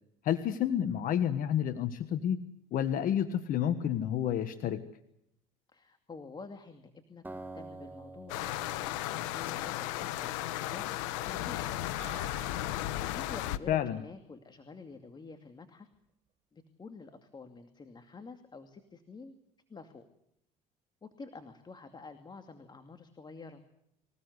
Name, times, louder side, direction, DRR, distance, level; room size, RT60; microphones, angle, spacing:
voice 1, 0.2-2.4 2.7-4.8 13.7-14.0, left 10 dB, 60° left, 10 dB, 1.5 m, -30 dB
voice 2, 5.7-8.4 8.7-10.8 11.2-12.1 13.2-15.9 16.5-19.3 19.7-20.1 21.0-23.6, left 4 dB, 30° left, 7 dB, 2.5 m, -49 dB
Acoustic guitar, 7.2-10.4, right 2 dB, 10° right, 2.2 m, -48 dB
sound 1, 8.3-13.6, left 14 dB, 90° left, 1.2 m, -35 dB
Piano, 12.0-13.6 15.9-16.0, right 11 dB, 40° right, 3.6 m, -53 dB
25.5 x 17.0 x 8.2 m, 0.77 s
supercardioid pair, 85°, 16 cm